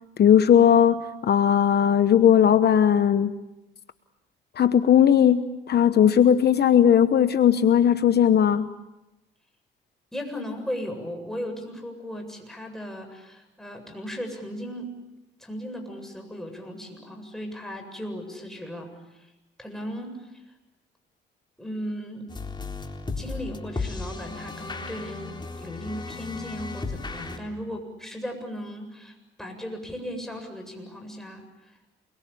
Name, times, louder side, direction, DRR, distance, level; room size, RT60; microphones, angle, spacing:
voice 1, 0.2-3.3 4.6-8.7, left 9 dB, 55° left, 11 dB, 1.0 m, -18 dB
voice 2, 10.1-14.9 15.4-18.9 19.2-19.3 19.6-20.4 21.6-22.3 23.2-31.4, equal, ahead, 3 dB, 7.7 m, -36 dB
sound 1, 22.3-27.4, left 3 dB, 20° left, 4.0 m, -35 dB
28.5 x 22.5 x 8.6 m, 0.98 s
cardioid pair, 90°, 20 cm